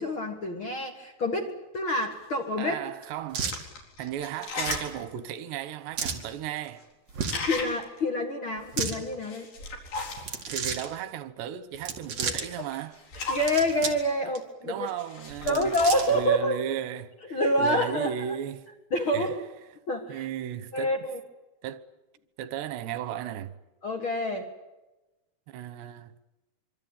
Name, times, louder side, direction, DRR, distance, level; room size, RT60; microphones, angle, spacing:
voice 1, 0.0-2.8 7.4-9.5 12.2-12.3 13.3-14.9 15.5-16.6 17.3-18.1 18.9-19.4 19.9-20.2 20.7-21.2 23.8-24.5, equal, 45° left, 1.9 m, -27 dB
sound 1, 2.1-2.2 2.9-3.0 3.4-5.0 5.4-5.5 6.2-6.3 6.5-6.8 7.1-8.0 9.1-10.4 12.2-13.7 14.9-16.3, left 3 dB, 65° left, 5.9 m, -37 dB
voice 2, 2.6-3.7 4.0-6.8 10.5-13.0 14.2-14.3 14.6-15.8 16.1-18.7 19.1-19.4 20.1-21.0 21.6-21.9 22.4-23.5 25.5-26.1, right 9 dB, 90° right, 3.3 m, -35 dB
sound 2, 3.3-3.6 4.6-4.9 6.0-6.2 7.1-7.5 8.6-9.0 10.2-10.9 11.7-12.5 13.3-14.0 14.3-14.4 15.3-16.2, right 6 dB, 45° right, 2.9 m, -32 dB
25.0 x 25.0 x 8.9 m
omnidirectional pair, 4.7 m